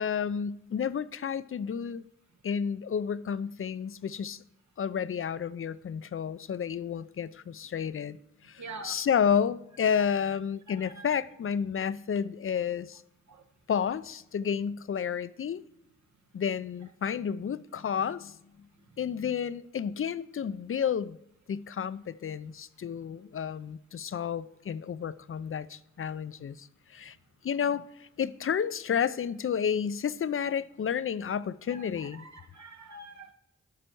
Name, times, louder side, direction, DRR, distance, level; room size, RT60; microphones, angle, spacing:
voice 1, 0.0-2.0 2.4-4.4 4.8-8.2 8.4-13.0 13.7-15.6 16.3-18.4 19.0-21.2 21.5-27.2 27.4-32.3, left 7 dB, 45° left, 0.4 m, -31 dB
voice 2, 8.6-9.0 10.0-10.1 10.7-11.1 12.6-12.7 13.3-13.4 31.7-33.3, right 3 dB, 70° right, 1.1 m, -45 dB
12.5 x 5.2 x 4.5 m
cardioid pair, 40°, 29 cm